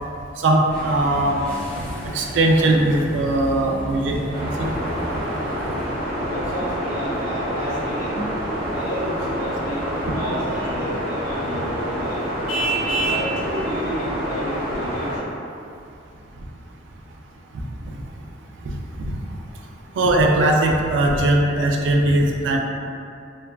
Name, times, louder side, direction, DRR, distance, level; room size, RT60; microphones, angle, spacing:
voice 1, 0.4-1.4 2.0-4.2 4.6-4.7 17.9-18.0 18.7-19.1 20.0-22.6, right 1 dB, 65° right, 0 dB, 0.3 m, -19 dB
sound 1, 0.7-5.8, equal, 5° left, 0.5 m, -33 dB
sound 2, 4.3-15.2, equal, 45° right, 1.2 m, -27 dB
voice 2, 6.2-8.3 8.7-12.2 12.8-15.2, equal, 45° left, -9 dB, 0.9 m, -31 dB
Vehicle horn car horn honking, 12.5-13.3, right 4 dB, 90° left, 0.4 m, -24 dB
3.3 x 2.2 x 2.3 m, 2.5 s
head